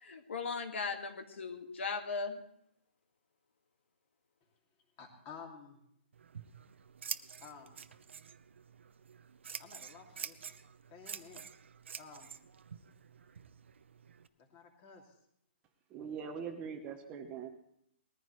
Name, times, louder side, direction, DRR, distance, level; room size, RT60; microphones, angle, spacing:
voice 1, 0.0-2.4, left 4 dB, 75° left, 5 dB, 1.8 m, -38 dB
voice 2, 5.0-5.8 7.4-7.9 9.6-10.6 10.9-11.4 12.0-12.3 14.4-15.1, left 5 dB, 25° left, 2 dB, 2.6 m, -52 dB
Scissors, 6.1-14.3, right 7 dB, 75° right, 0.8 m, -48 dB
voice 3, 15.9-17.5, right 6 dB, 15° right, 5 dB, 1.0 m, -42 dB
20.5 x 14.5 x 3.2 m, 0.73 s
hypercardioid pair, 160°, 6 cm